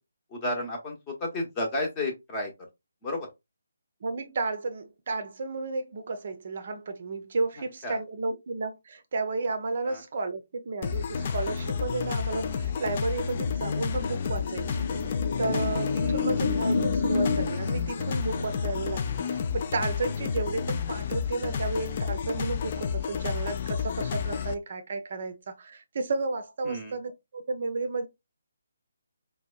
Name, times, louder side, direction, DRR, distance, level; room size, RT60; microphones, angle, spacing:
voice 1, 0.3-2.5 3.0-3.3 7.8-8.0 9.8-10.0 16.0-16.3 26.6-27.0, left 1 dB, 20° left, 0.8 m, -32 dB
voice 2, 4.0-28.1, right 3 dB, 45° right, 0.5 m, -32 dB
sound 1, 10.8-24.5, left 6 dB, 35° left, 0.3 m, -31 dB
sound 2, 13.3-20.2, left 4 dB, 50° left, 0.7 m, -31 dB
4.4 x 2.2 x 2.3 m
figure-of-eight pair, 145°, 0 cm